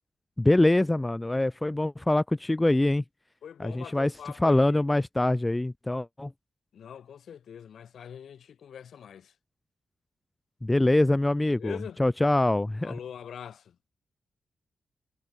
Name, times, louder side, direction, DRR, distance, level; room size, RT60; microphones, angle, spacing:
voice 1, 0.4-3.0 3.6-4.1 4.4-6.3 10.6-12.9, left 1 dB, 10° left, 1.4 m, -24 dB
voice 2, 3.4-4.8 6.7-9.3 11.5-12.0 12.8-13.8, left 8 dB, 75° left, 6.5 m, -43 dB
wide cardioid pair, 155°, 0 cm